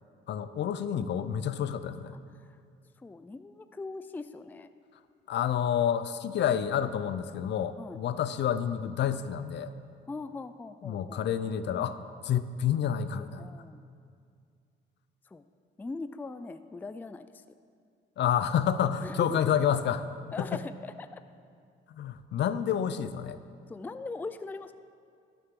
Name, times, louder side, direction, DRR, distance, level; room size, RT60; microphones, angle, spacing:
voice 1, 0.3-2.1 5.3-9.7 10.8-13.5 18.2-20.1 22.0-23.4, left 9 dB, 60° left, 12 dB, 0.5 m, -29 dB
voice 2, 3.0-4.7 7.8-8.0 10.1-11.3 13.4-13.9 15.3-15.4 15.8-17.4 19.0-19.4 20.3-21.2 23.7-24.7, left 3 dB, 10° left, 11 dB, 0.3 m, -40 dB
11.5 x 9.8 x 3.7 m, 2.3 s
cardioid pair, 90°, 20 cm